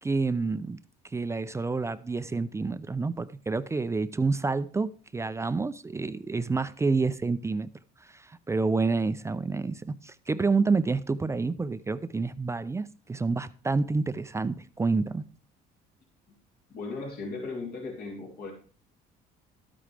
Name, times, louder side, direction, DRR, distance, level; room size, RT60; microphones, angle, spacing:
voice 1, 0.0-0.8 1.1-7.7 8.1-15.2, right 4 dB, 15° right, 0.5 m, -28 dB
voice 2, 16.7-18.5, left 3 dB, 65° left, 3.4 m, -36 dB
12.5 x 8.9 x 3.4 m
cardioid pair, 110°, 17 cm